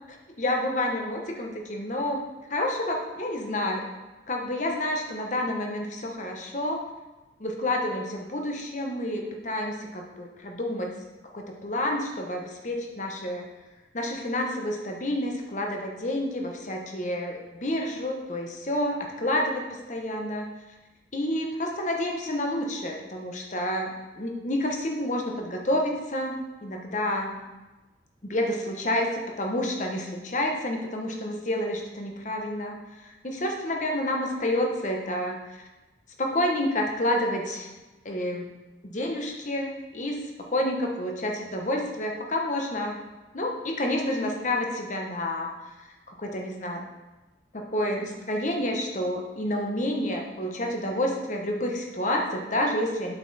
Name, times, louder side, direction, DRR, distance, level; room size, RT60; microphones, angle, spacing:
voice 1, 0.4-2.2 2.5-3.8 4.3-6.8 7.4-10.9 11.3-13.4 13.9-20.5 21.1-26.3 26.6-27.4 28.2-29.1 29.4-32.8 33.0-35.4 36.2-37.7 38.0-38.5 38.8-40.2 40.5-43.0 43.3-45.5 46.1-46.8 47.5-53.1, left 1 dB, 40° left, 1 dB, 1.1 m, -29 dB
8.1 x 5.9 x 4.2 m, 1.1 s
head